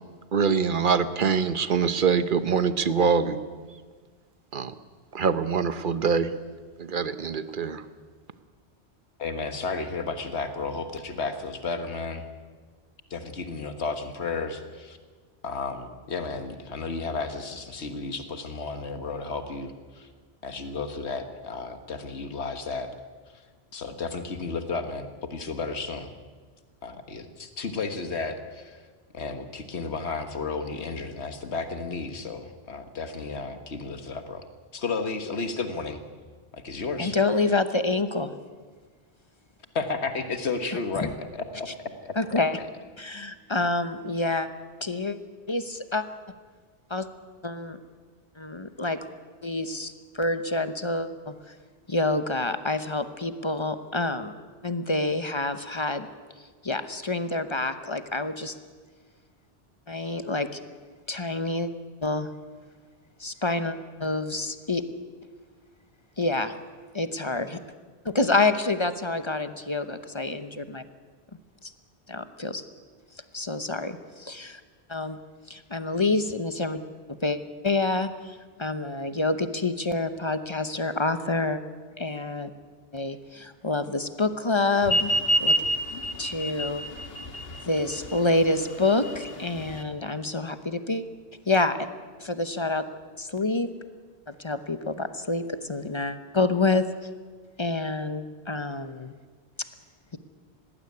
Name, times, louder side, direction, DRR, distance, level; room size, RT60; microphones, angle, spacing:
voice 1, 0.3-3.4 4.5-4.7 5.1-6.3 6.8-7.8, right 6 dB, 50° right, 12 dB, 1.1 m, -24 dB
voice 2, 9.2-12.3 13.1-15.0 15.4-20.1 20.4-22.9 23.7-26.1 26.8-28.8 29.1-34.5 34.7-36.0 36.5-37.2 39.8-41.7 42.0-42.1, left 4 dB, 80° left, 8 dB, 1.7 m, -33 dB
voice 3, 37.0-38.3 41.0-41.1 42.2-42.6 43.0-44.5 44.8-45.2 45.5-46.0 46.9-47.1 47.4-47.8 48.4-49.0 49.4-51.5 51.9-54.3 54.6-56.1 56.6-58.6 59.9-60.6 61.1-61.7 62.0-62.3 63.2-64.8 66.2-66.5 66.9-67.6 68.0-70.8 71.6-71.7 72.1-72.6 73.3-74.6 74.9-75.2 75.5-76.8 77.2-77.4 77.6-81.6 82.0-82.5 82.9-85.1 85.4-85.6 86.2-86.8 87.7-91.0 91.5-91.9 92.2-92.8 93.2-93.7 94.3-96.9 97.6-99.1, left 2 dB, 30° left, 10 dB, 0.9 m, -27 dB
sound 1, 84.8-89.8, equal, 65° left, 1.9 m, -27 dB
19.5 x 16.0 x 9.7 m, 1.5 s
omnidirectional pair, 1.1 m